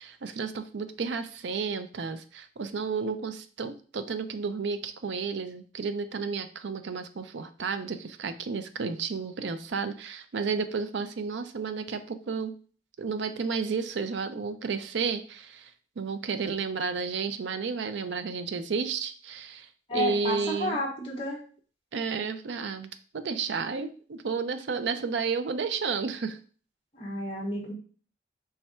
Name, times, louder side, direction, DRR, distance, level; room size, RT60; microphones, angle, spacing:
voice 1, 0.0-12.5 13.0-15.7 16.0-19.7 19.9-20.8 21.9-26.4, right 5 dB, 85° right, 10 dB, 0.5 m, -32 dB
voice 2, 19.9-21.4 26.9-27.7, left 1 dB, 30° left, -1 dB, 1.2 m, -31 dB
3.4 x 3.3 x 4.3 m, 0.41 s
head